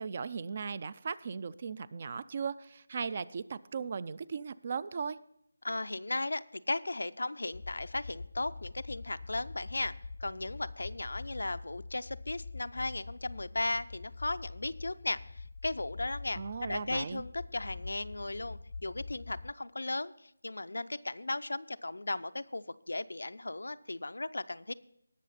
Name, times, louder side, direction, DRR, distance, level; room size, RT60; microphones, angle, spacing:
voice 1, 0.0-5.2 16.4-17.2, right 5 dB, 30° right, 18 dB, 0.4 m, -37 dB
voice 2, 5.6-9.9 10.2-24.7, left 2 dB, 85° left, 12 dB, 0.6 m, -36 dB
sound 1, 7.5-19.5, left 3 dB, 45° left, 0.6 m, -45 dB
19.0 x 6.5 x 4.2 m, 0.75 s
figure-of-eight pair, 175°, 0 cm